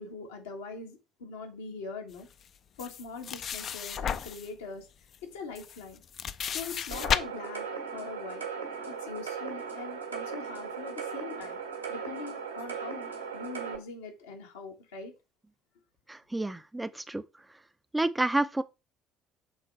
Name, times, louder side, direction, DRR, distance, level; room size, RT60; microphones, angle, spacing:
voice 1, 0.0-2.3 2.8-4.9 5.2-6.0 6.5-8.5 8.9-11.6 11.9-15.1, left 4 dB, 70° left, 1.5 m, -42 dB
sound 1, 2.8-4.5 5.1-5.2 5.5-7.2, left 8 dB, 45° left, 0.5 m, -33 dB
sound 2, 6.9-13.8, right 6 dB, 85° right, 1.4 m, -38 dB
voice 2, 16.1-17.2 17.9-18.6, right 2 dB, 10° right, 0.4 m, -29 dB
6.4 x 3.8 x 4.6 m
figure-of-eight pair, 55°, 0 cm